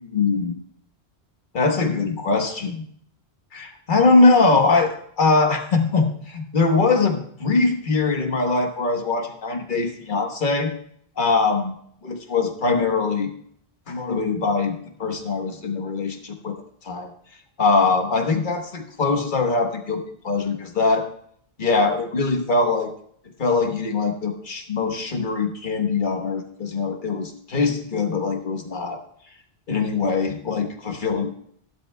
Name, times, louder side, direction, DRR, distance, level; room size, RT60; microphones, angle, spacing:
voice 1, 0.1-0.5 1.5-2.8 3.5-10.7 11.2-11.7 12.0-13.3 13.9-16.6 16.8-17.1 17.6-21.1 21.6-22.9 23.4-29.0 29.7-31.3, left 3 dB, 50° left, 4 dB, 1.4 m, -22 dB
16.0 x 11.5 x 2.2 m, 0.64 s
omnidirectional pair, 1.1 m